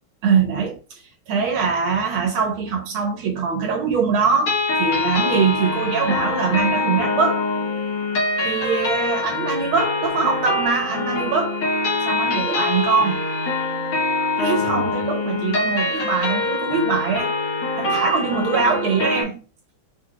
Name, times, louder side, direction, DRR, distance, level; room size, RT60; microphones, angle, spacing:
voice 1, 0.2-4.5 4.8-7.4 8.4-11.6 12.0-13.3 14.4-17.3 17.7-19.4, right 5 dB, 85° right, 1.7 m, -22 dB
sound 1, 4.5-19.2, left 3 dB, 90° left, 2.2 m, -24 dB
4.9 x 3.9 x 2.4 m
omnidirectional pair, 2.3 m